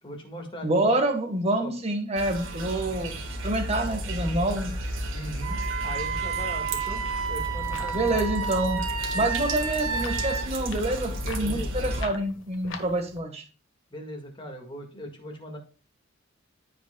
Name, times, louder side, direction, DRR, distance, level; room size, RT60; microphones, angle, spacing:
voice 1, 0.0-1.0 1.6-1.7 5.1-7.0 7.3-8.2 11.4-11.7 13.9-15.6, equal, 25° left, 2 dB, 1.7 m, -39 dB
voice 2, 0.6-3.2 3.4-4.7 7.9-8.8 9.1-13.4, right 2 dB, 30° right, 3 dB, 1.3 m, -27 dB
sound 1, 2.2-12.0, equal, 70° right, 1.5 m, -33 dB
Wind instrument woodwind instrument, 5.4-10.5, right 7 dB, 90° right, 1.2 m, -31 dB
sound 2, 6.9-13.2, left 4 dB, 70° left, 1.3 m, -43 dB
14.5 x 5.1 x 2.2 m, 0.35 s
head